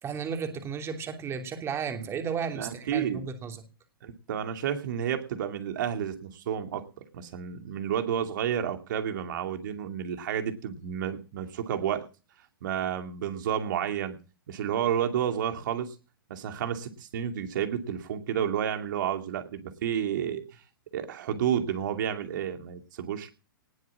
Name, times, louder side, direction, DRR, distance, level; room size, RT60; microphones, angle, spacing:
voice 1, 0.0-3.6, right 6 dB, 20° right, 2.9 m, -34 dB
voice 2, 2.5-3.3 4.0-6.9 7.1-12.0 12.6-14.2 14.5-15.9 16.3-20.4 20.9-23.3, right 9 dB, 60° right, 2.5 m, -31 dB
19.0 x 7.8 x 7.4 m
hypercardioid pair, 120°, 12 cm